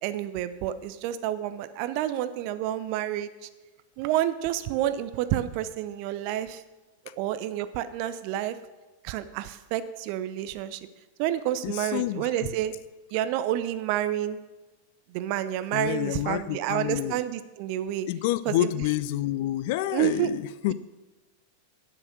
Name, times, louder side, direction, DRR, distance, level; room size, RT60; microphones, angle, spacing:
voice 1, 0.0-3.5 4.0-6.6 7.2-8.6 9.0-10.8 11.2-12.7 13.1-14.4 15.1-18.1 18.5-18.7 19.9-20.3, right 12 dB, 45° right, 12 dB, 0.7 m, -29 dB
voice 2, 11.6-12.5 15.7-17.2 18.1-20.7, left 14 dB, 50° left, 17 dB, 0.4 m, -28 dB
10.5 x 7.0 x 6.2 m, 1.1 s
figure-of-eight pair, 90°, 0 cm